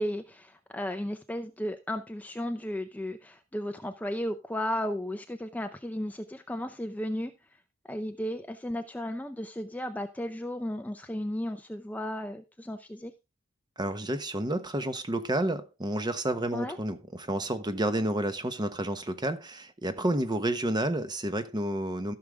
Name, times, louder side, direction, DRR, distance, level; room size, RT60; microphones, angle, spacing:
voice 1, 0.0-7.3 7.9-13.1 16.5-16.8, equal, 10° left, 0.6 m, -34 dB
voice 2, 13.8-22.1, right 1 dB, 20° right, 1.0 m, -30 dB
15.0 x 6.4 x 3.5 m
head